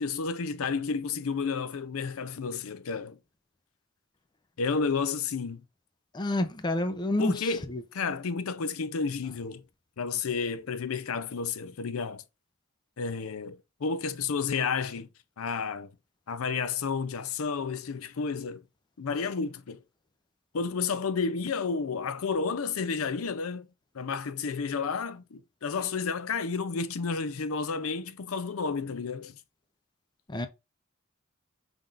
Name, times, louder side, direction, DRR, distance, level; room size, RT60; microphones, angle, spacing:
voice 1, 0.0-3.2 4.6-5.6 7.2-7.6 7.9-9.6 10.0-12.2 13.0-15.1 15.4-15.9 16.3-18.6 19.0-19.8 20.5-23.7 23.9-29.4, left 5 dB, 80° left, 0.5 m, -31 dB
voice 2, 6.1-7.8 30.3-30.5, left 1 dB, 20° left, 0.5 m, -29 dB
5.6 x 3.5 x 2.4 m
head